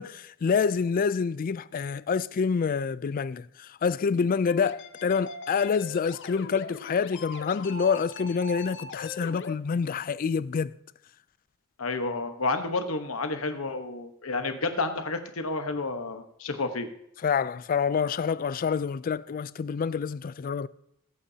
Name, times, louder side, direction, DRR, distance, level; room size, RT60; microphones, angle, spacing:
voice 1, 0.0-10.7 17.2-20.7, left 6 dB, 40° left, 0.3 m, -27 dB
sound 1, 4.5-9.5, left 2 dB, 60° left, 0.8 m, -41 dB
voice 2, 11.8-16.9, left 3 dB, 80° left, 1.1 m, -30 dB
21.5 x 8.5 x 2.8 m
head